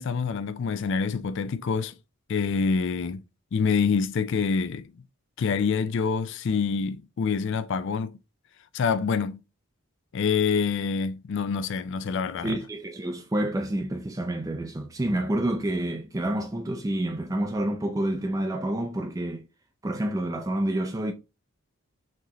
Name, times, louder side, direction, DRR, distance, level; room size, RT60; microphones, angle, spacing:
voice 1, 0.0-2.0 2.3-3.2 3.5-4.9 5.4-8.2 8.7-9.4 10.1-12.6, left 5 dB, 55° left, 0.3 m, -26 dB
voice 2, 12.4-19.4 19.8-21.1, right 1 dB, 15° right, 0.4 m, -28 dB
5.8 x 3.2 x 2.9 m
head